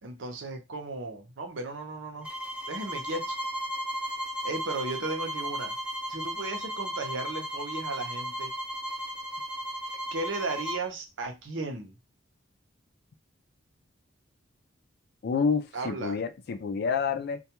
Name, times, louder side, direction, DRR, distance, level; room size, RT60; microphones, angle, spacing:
voice 1, 0.0-2.3 2.7-3.4 4.4-5.7 6.1-8.5 10.1-11.9 15.7-16.2, right 3 dB, 70° right, 0.7 m, -35 dB
sound 1, 2.2-10.9, equal, 5° right, 0.5 m, -35 dB
voice 2, 15.2-17.4, left 5 dB, 55° left, 0.4 m, -28 dB
2.3 x 2.2 x 2.9 m
head